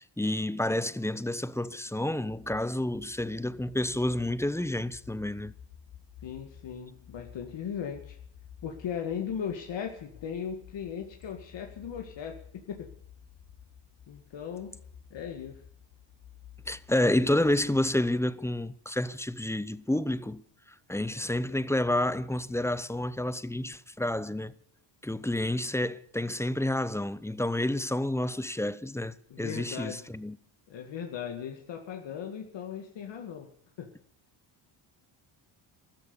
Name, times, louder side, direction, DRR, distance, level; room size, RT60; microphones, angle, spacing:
voice 1, 0.0-5.5 16.7-20.4 20.9-24.5 25.0-30.4, left 1 dB, 5° left, 0.7 m, -29 dB
sound 1, 5.0-18.3, left 8 dB, 90° left, 5.2 m, -53 dB
voice 2, 6.2-8.2 8.6-12.9 14.1-14.8 15.1-15.6 29.3-30.1 30.7-33.5 33.8-33.9, left 8 dB, 65° left, 2.0 m, -38 dB
14.5 x 13.5 x 6.9 m
cardioid pair, 100°, 48 cm